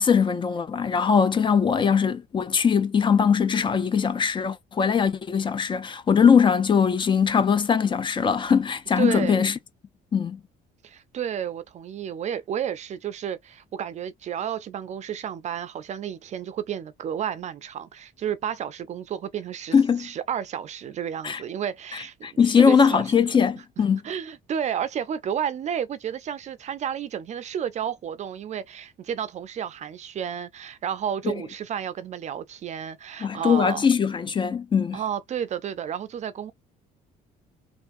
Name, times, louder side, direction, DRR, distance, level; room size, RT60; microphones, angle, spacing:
voice 1, 0.0-9.5 10.1-10.4 19.7-20.1 21.2-21.4 22.2-24.0 31.2-31.3 33.2-35.0, left 6 dB, 30° left, 0.4 m, -21 dB
voice 2, 9.0-9.4 10.8-23.2 24.0-33.8 34.9-36.5, right 9 dB, 45° right, 0.4 m, -31 dB
3.5 x 2.4 x 2.5 m
cardioid pair, 110°, 17 cm